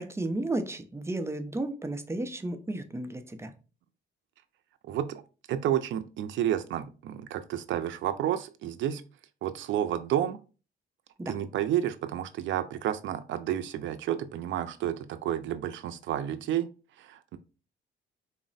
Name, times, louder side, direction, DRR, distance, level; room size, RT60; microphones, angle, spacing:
voice 1, 0.0-3.5 11.2-11.4, right 2 dB, 15° right, 0.5 m, -33 dB
voice 2, 4.9-5.2 5.5-9.0 9.4-10.4 11.3-16.7 17.0-17.4, right 11 dB, 70° right, 0.4 m, -30 dB
4.0 x 2.0 x 3.9 m
cardioid pair, 90°, 20 cm